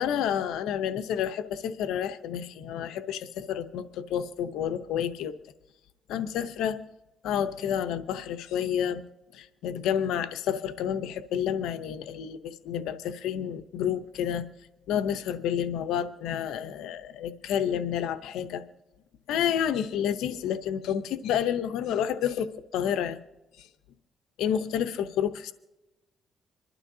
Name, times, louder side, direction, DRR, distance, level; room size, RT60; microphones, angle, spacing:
voice 1, 0.0-5.3 6.1-6.8 7.2-9.0 9.3-14.5 14.9-18.6 19.3-23.2 24.4-25.5, left 9 dB, 90° left, 11 dB, 0.7 m, -29 dB
26.0 x 12.0 x 2.7 m, 1.0 s
cardioid pair, 90°, 0 cm